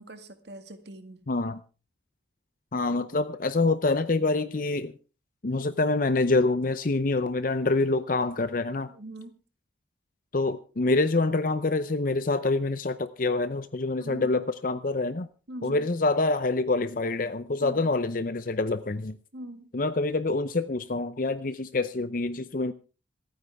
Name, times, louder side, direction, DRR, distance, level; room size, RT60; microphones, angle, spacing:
voice 1, 0.0-1.3 8.9-9.4 13.9-14.4 15.5-15.9 17.6-17.9 19.3-19.7, right 1 dB, 65° right, 8 dB, 1.9 m, -43 dB
voice 2, 1.3-1.6 2.7-4.9 5.4-8.9 10.3-15.3 15.6-19.1 19.7-22.7, left 3 dB, 45° left, 12 dB, 0.6 m, -26 dB
27.0 x 9.4 x 3.5 m, 0.35 s
head